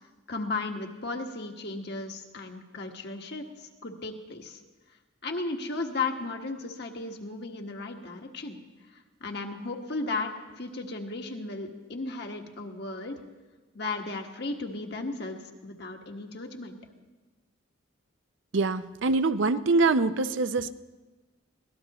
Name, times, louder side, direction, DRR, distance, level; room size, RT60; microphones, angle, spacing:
voice 1, 0.3-4.6 5.2-8.5 8.9-10.3 10.6-13.2 13.7-16.8, left 3 dB, 60° left, 3 dB, 1.4 m, -35 dB
voice 2, 18.5-20.7, right 3 dB, 70° right, 13 dB, 0.6 m, -24 dB
23.0 x 17.5 x 3.0 m, 1.2 s
head